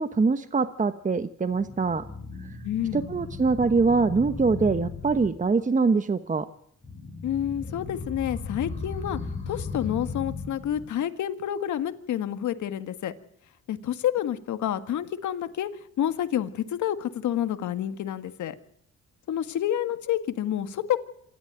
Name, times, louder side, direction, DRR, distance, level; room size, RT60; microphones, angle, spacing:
voice 1, 0.0-2.0 2.9-6.5, right 4 dB, 25° right, 11 dB, 1.1 m, -23 dB
sound 1, 1.5-5.5 6.8-10.8, left 4 dB, 25° left, 7.6 m, -36 dB
voice 2, 2.6-3.0 7.2-9.2 9.5-13.1 13.7-15.7 16.0-18.6 19.3-21.0, left 11 dB, 75° left, 10 dB, 1.8 m, -29 dB
27.0 x 12.5 x 9.1 m, 0.67 s
cardioid pair, 90°, 30 cm